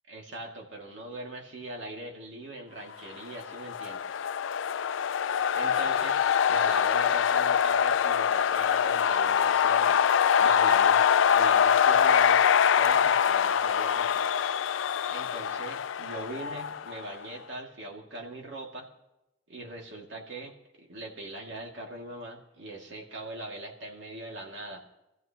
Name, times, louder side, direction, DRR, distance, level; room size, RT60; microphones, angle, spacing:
voice 1, 0.1-4.2 5.5-12.5 12.8-14.2 15.1-18.9 19.5-24.8, right 2 dB, 75° right, 0 dB, 2.4 m, -41 dB
sound 1, 3.3-17.1, left 8 dB, 90° left, 0.4 m, -24 dB
24.5 x 14.5 x 3.0 m, 0.94 s
head